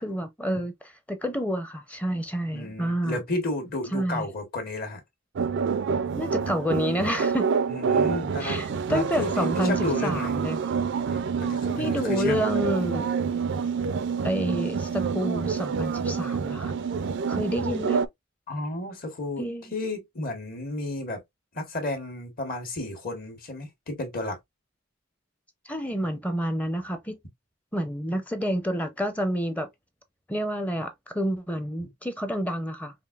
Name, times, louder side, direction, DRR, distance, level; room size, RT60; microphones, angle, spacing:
voice 1, 0.0-3.2 3.9-4.3 6.1-7.5 8.4-10.6 11.8-13.1 14.2-16.8 17.3-18.0 19.4-19.7 25.7-27.2 27.7-29.7 30.3-32.9, equal, 10° left, 0.6 m, -29 dB
voice 2, 2.5-5.0 7.7-10.4 11.1-12.6 18.5-19.4 19.7-21.2 21.5-24.4, left 2 dB, 45° left, 1.4 m, -32 dB
sound 1, 5.4-18.1, right 6 dB, 60° right, 0.4 m, -27 dB
5.0 x 2.6 x 2.4 m
head